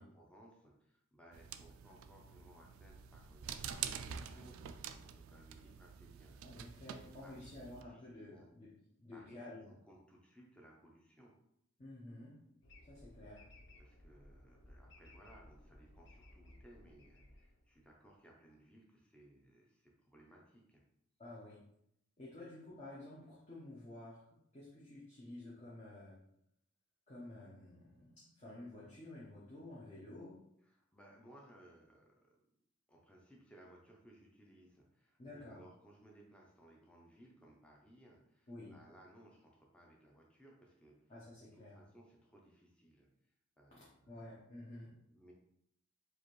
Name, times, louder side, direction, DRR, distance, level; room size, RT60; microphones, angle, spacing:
voice 1, 0.0-8.5 9.1-11.4 13.8-20.8 22.4-22.5 30.6-32.3 32.9-41.1 41.4-44.3 45.1-45.3, right 1 dB, 5° left, -2 dB, 0.5 m, -62 dB
sound 1, 1.3-7.8, right 8 dB, 90° right, 0.3 m, -47 dB
voice 2, 6.4-8.7 9.0-9.7 11.8-12.4 12.9-13.5 21.2-21.6 22.2-24.2 24.5-26.2 27.1-30.4 35.2-35.6 38.5-38.8 41.1-41.8 43.7-44.9, left 1 dB, 35° left, -7 dB, 0.8 m, -51 dB
sound 2, 12.6-18.0, left 1 dB, 60° left, 0.6 m, -60 dB
4.8 x 2.5 x 3.0 m, 0.75 s
head